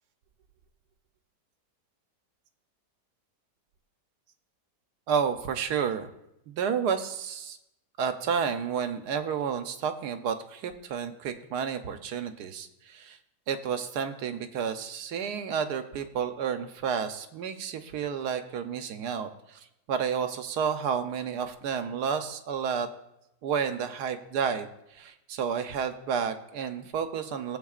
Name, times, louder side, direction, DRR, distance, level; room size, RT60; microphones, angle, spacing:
voice 1, 5.1-6.1 6.5-7.6 8.0-13.2 13.5-22.9 23.4-27.6, right 7 dB, 75° right, 8 dB, 1.3 m, -31 dB
18.5 x 7.8 x 2.4 m, 0.86 s
omnidirectional pair, 1.8 m